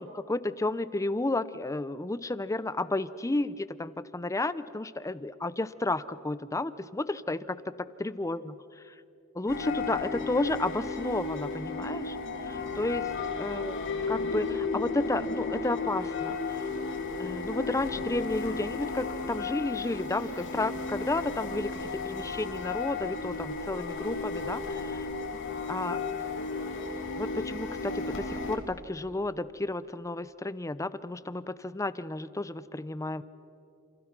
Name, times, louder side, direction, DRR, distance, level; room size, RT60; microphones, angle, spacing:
voice 1, 0.0-8.9 9.3-12.2 12.4-13.1 13.4-13.8 14.1-16.7 17.2-25.1 25.7-26.0 27.1-33.2, left 2 dB, 15° left, 15 dB, 0.6 m, -32 dB
sound 1, 9.5-28.6, left 4 dB, 60° left, 2.8 m, -34 dB
28.0 x 28.0 x 6.0 m, 2.6 s
head